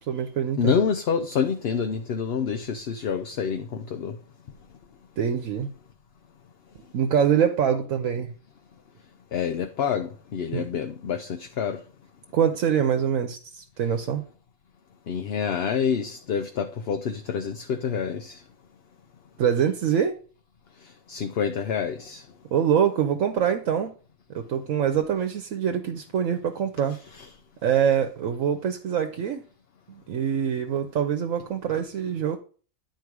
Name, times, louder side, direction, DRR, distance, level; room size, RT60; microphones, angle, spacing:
voice 1, 0.1-0.8 5.2-5.7 6.9-8.3 10.5-10.7 12.3-14.2 19.4-20.2 22.5-23.9 24.3-27.0 27.6-29.4 29.9-32.4, right 8 dB, 75° right, 1.1 m, -24 dB
voice 2, 0.6-4.2 9.3-11.8 15.1-18.4 21.1-22.2 27.1-27.3, left 7 dB, 60° left, 0.8 m, -27 dB
9.4 x 4.6 x 4.7 m
omnidirectional pair, 1.4 m